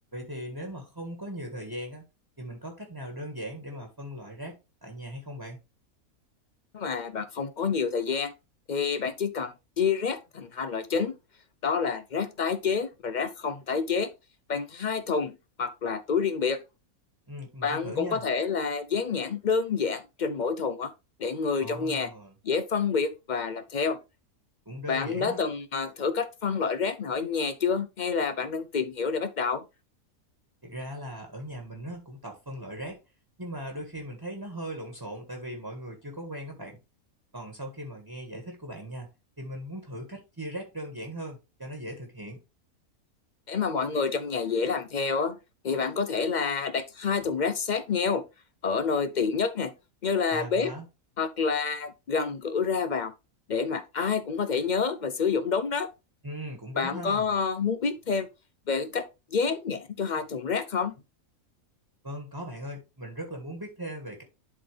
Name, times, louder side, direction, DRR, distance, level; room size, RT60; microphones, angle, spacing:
voice 1, 0.1-2.0 2.4-5.6 17.3-18.2 21.6-22.4 24.6-25.4 30.6-33.0 33.4-36.8 37.3-39.1 39.4-42.4 50.3-50.9 56.2-57.3 62.0-64.2, equal, 15° right, 1.5 m, -39 dB
voice 2, 6.7-8.3 8.7-11.2 11.6-14.1 14.5-16.6 17.6-20.9 21.2-22.1 22.4-24.0 24.9-29.6 43.5-45.4 45.6-48.2 48.6-49.7 50.0-50.7 51.2-53.1 53.5-55.9 56.8-58.3 58.7-59.0 59.3-60.9, left 5 dB, 55° left, 0.5 m, -28 dB
11.5 x 4.0 x 3.4 m
omnidirectional pair, 1.5 m